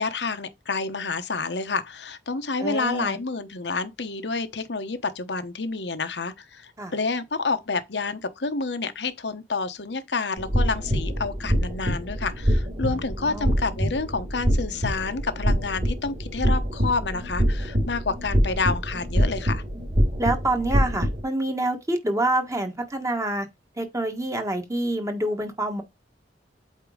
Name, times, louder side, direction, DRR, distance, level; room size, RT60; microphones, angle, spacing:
voice 1, 0.0-19.6, left 4 dB, 70° left, 1.0 m, -29 dB
voice 2, 2.6-3.2 6.8-6.9 12.8-13.5 20.2-23.5 23.8-25.8, right 1 dB, 20° right, 1.4 m, -27 dB
sound 1, 10.4-21.2, equal, 45° right, 3.4 m, -25 dB
8.3 x 2.9 x 5.0 m
head